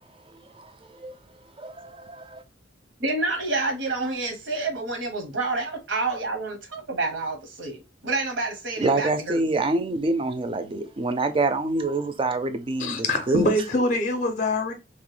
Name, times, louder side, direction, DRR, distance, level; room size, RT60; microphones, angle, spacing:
voice 1, 0.6-1.2 1.6-2.4 8.8-13.0 13.3-13.5, right 2 dB, 30° right, 0.4 m, -26 dB
voice 2, 3.0-9.5, right 3 dB, 80° right, 0.9 m, -28 dB
voice 3, 12.8-14.7, left 1 dB, 40° left, 0.5 m, -24 dB
2.9 x 2.1 x 3.1 m
head